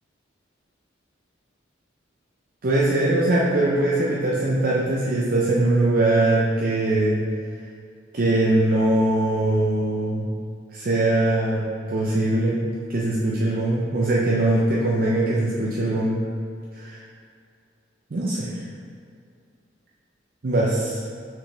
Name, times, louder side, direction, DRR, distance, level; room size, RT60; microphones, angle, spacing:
voice 1, 2.6-7.2 8.1-10.3 10.7-16.2 16.8-17.0 18.1-18.6 20.4-21.0, right 1 dB, 50° right, -4 dB, 0.5 m, -21 dB
5.7 x 5.1 x 3.3 m, 2.3 s
head